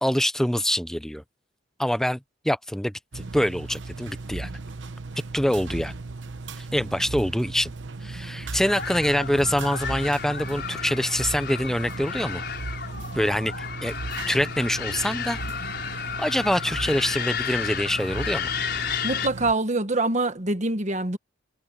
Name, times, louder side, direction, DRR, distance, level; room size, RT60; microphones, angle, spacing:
voice 1, 0.0-1.2 1.8-2.2 2.4-4.5 5.3-5.9 6.5-7.7 8.0-12.4 13.1-13.9 14.3-15.4 16.2-18.5, equal, 5° left, 0.6 m, -25 dB
sound 1, 3.1-19.5, right 3 dB, 80° right, 0.9 m, -37 dB
sound 2, 8.6-19.3, left 7 dB, 60° left, 5.9 m, -32 dB
voice 2, 19.0-21.2, right 2 dB, 40° right, 1.4 m, -25 dB
head